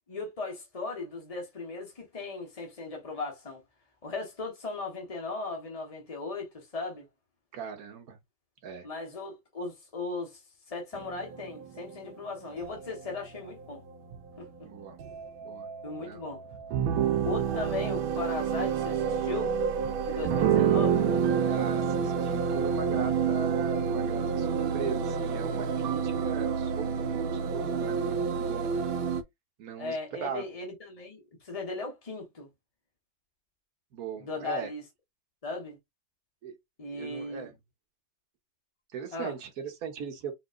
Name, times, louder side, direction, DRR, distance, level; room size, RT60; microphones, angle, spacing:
voice 1, 0.1-3.6 4.0-7.1 8.8-10.4 10.7-13.8 14.4-14.5 15.8-16.4 17.2-19.5 20.0-21.1 29.8-32.5 34.2-34.8 35.4-35.8 36.8-37.5 39.1-39.4, left 3 dB, 35° left, 0.5 m, -37 dB
voice 2, 7.5-8.2 8.6-8.9 14.6-15.0 15.4-15.7 16.0-16.2 20.1-20.2 21.5-28.8 29.6-30.5 33.9-34.7 36.4-36.5 36.9-37.5 38.9-40.3, right 6 dB, 60° right, 1.0 m, -39 dB
sound 1, 10.9-29.2, right 7 dB, 80° right, 1.4 m, -29 dB
4.1 x 3.0 x 2.5 m
omnidirectional pair, 2.3 m